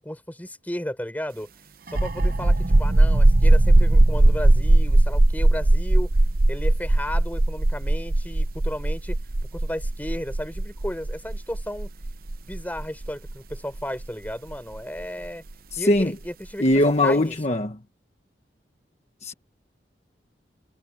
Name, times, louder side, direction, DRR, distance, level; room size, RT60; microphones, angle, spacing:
voice 1, 0.0-1.5 1.9-6.1 6.5-9.2 9.5-11.9 12.5-15.4 15.8-16.7 17.0-17.6, equal, 10° left, 5.6 m, -34 dB
sound 1, 1.9-15.3, right 1 dB, 55° right, 0.9 m, -19 dB
voice 2, 15.7-16.1 16.6-17.8 19.2-19.3, left 1 dB, 40° left, 1.4 m, -21 dB
head